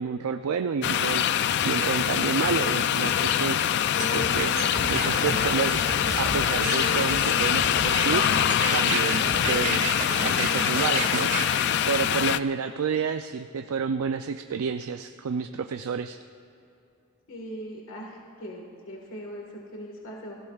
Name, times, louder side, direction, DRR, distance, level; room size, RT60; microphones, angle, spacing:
voice 1, 0.0-3.6 4.1-4.6 4.9-5.8 6.2-8.3 8.7-16.2, right 6 dB, 75° right, 8 dB, 0.4 m, -30 dB
sound 1, 0.8-12.4, left 9 dB, 50° left, 0.3 m, -24 dB
sound 2, 4.0-11.4, right 3 dB, 35° right, 1.9 m, -32 dB
voice 2, 17.3-20.4, equal, 65° left, 0 dB, 1.6 m, -40 dB
29.5 x 15.5 x 2.4 m, 2.7 s
head